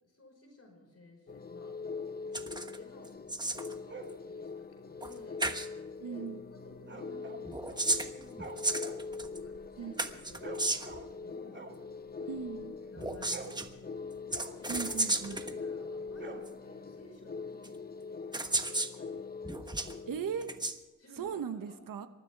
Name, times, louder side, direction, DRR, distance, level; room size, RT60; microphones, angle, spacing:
voice 1, 0.0-1.9 2.3-5.4 6.0-6.2 6.5-11.6 12.1-12.4 12.9-13.9 14.5-14.9 15.2-17.9 18.2-19.1 21.0-21.8, left 1 dB, 50° left, 1 dB, 5.1 m, -55 dB
sound 1, 1.3-20.7, left 4 dB, 30° left, 0.7 m, -43 dB
sound 2, 2.3-2.8 3.0-3.7 5.0-5.1 5.4-5.7 7.4-9.4 10.0-11.0 13.0-13.7 14.3-15.5 16.5-16.6 17.6-17.7 18.3-18.9 19.4-19.9 20.4-20.8, right 2 dB, 15° right, 1.2 m, -33 dB
sound 3, 3.9-4.2 6.8-7.9 8.2-11.2 11.5-12.7 13.1-15.2 16.1-16.9, right 3 dB, 35° right, 1.9 m, -49 dB
voice 2, 6.0-6.4 9.8-9.9 12.3-12.8 14.7-15.4 20.1-20.5 21.2-22.1, right 7 dB, 90° right, 9 dB, 1.1 m, -38 dB
27.0 x 13.5 x 3.5 m, 1.2 s
wide cardioid pair, 90°, 33 cm